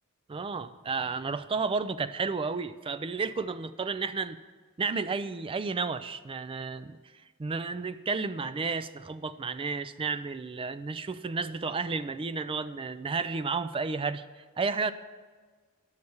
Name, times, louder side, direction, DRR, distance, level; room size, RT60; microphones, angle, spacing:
voice 1, 0.3-4.4 4.8-7.0 7.4-14.2 14.6-14.9, right 4 dB, 25° right, 12 dB, 0.3 m, -32 dB
11.0 x 6.5 x 7.0 m, 1.5 s
head